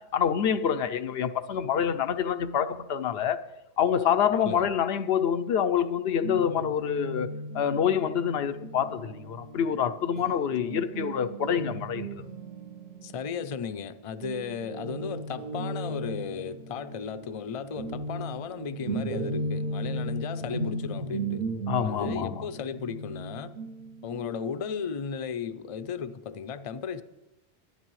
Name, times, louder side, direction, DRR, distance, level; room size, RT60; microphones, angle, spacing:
voice 1, 0.0-3.4 3.8-12.2 21.7-22.4, left 8 dB, 75° left, 0.8 m, -27 dB
Guitar, 6.2-13.9 14.2-24.7, right 2 dB, 50° right, 0.9 m, -36 dB
voice 2, 13.0-21.4 21.8-23.5 24.0-27.0, left 6 dB, 40° left, 0.6 m, -35 dB
23.5 x 9.6 x 3.1 m
omnidirectional pair, 1.0 m